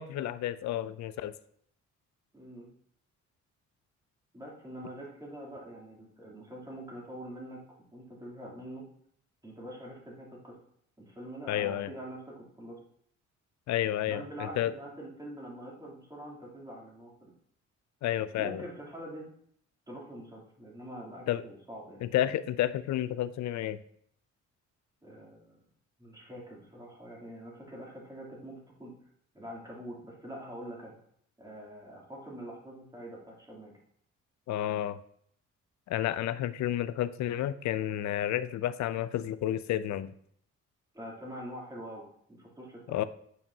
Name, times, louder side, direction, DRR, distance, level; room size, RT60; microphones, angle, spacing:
voice 1, 0.0-1.3 11.5-11.9 13.7-14.7 18.0-18.6 21.3-21.4 22.0-23.8 34.5-35.0 35.9-40.1 42.9-43.0, left 12 dB, 65° left, 15 dB, 0.5 m, -31 dB
voice 2, 2.3-2.7 4.3-8.9 9.4-10.6 11.0-12.8 14.0-17.3 18.3-19.2 19.9-22.0 25.0-25.6 26.0-28.9 29.3-30.9 31.4-33.7 40.9-43.1, right 1 dB, 15° right, -4 dB, 2.9 m, -44 dB
9.1 x 5.7 x 2.8 m, 0.67 s
cardioid pair, 90°, 30 cm